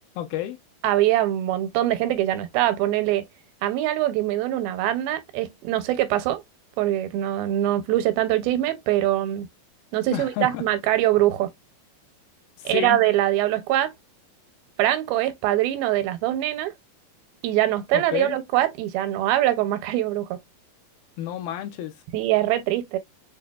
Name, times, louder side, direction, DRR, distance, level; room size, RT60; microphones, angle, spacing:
voice 1, 0.2-0.6 10.1-10.6 12.6-13.0 17.9-18.4 21.2-22.0, left 12 dB, 80° left, 2.5 m, -30 dB
voice 2, 0.8-3.3 3.6-6.4 6.8-9.5 9.9-11.5 12.7-13.9 14.8-16.7 17.4-20.4 22.1-23.0, right 14 dB, 85° right, 2.5 m, -23 dB
6.4 x 2.2 x 2.2 m
omnidirectional pair, 4.2 m